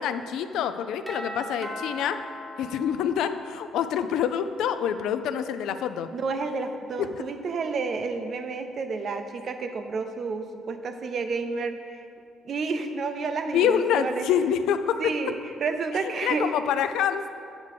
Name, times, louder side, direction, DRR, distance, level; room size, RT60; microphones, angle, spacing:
voice 1, 0.0-2.2 2.6-6.1 13.5-15.0 15.9-17.3, left 8 dB, 85° left, 10 dB, 0.4 m, -26 dB
Doorbell, 1.1-3.9, equal, 5° right, 0.9 m, -39 dB
voice 2, 6.1-12.1 12.4-14.3 15.0-16.5, right 4 dB, 45° right, 7 dB, 0.5 m, -30 dB
8.3 x 3.6 x 6.5 m, 2.3 s
cardioid pair, 140°, 0 cm